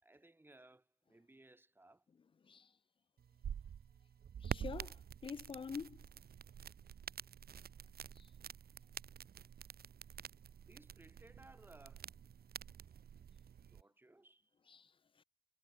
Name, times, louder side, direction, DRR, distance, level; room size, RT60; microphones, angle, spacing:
voice 1, 0.0-2.1 8.7-8.8 10.5-12.2 13.7-14.6, right 2 dB, 15° right, 2.5 m, -63 dB
sound 1, 3.2-13.8, right 8 dB, 85° right, 1.4 m, -48 dB
voice 2, 4.4-6.1 8.2-8.3 14.7-14.9 15.2-15.3, left 6 dB, 35° left, 0.4 m, -46 dB
wide cardioid pair, 170°, 16 cm